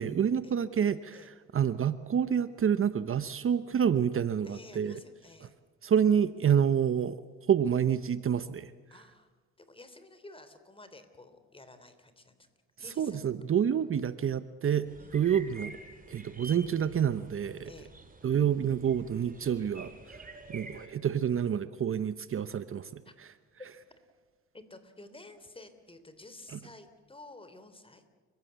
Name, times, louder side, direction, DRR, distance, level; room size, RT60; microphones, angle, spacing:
voice 1, 0.0-5.0 5.8-7.2 7.5-8.7 13.0-15.8 16.1-17.7 18.2-23.0 26.5-26.6, right 8 dB, 45° right, 13 dB, 0.9 m, -28 dB
voice 2, 4.4-5.5 8.9-9.3 9.6-12.5 12.8-13.2 15.0-15.4 17.6-17.9 23.0-23.1 24.5-28.0, left 2 dB, 20° left, 10 dB, 3.3 m, -52 dB
sound 1, 14.9-20.9, right 3 dB, 30° right, 3.3 m, -49 dB
30.0 x 16.5 x 8.1 m, 1.4 s
cardioid pair, 90°, 30 cm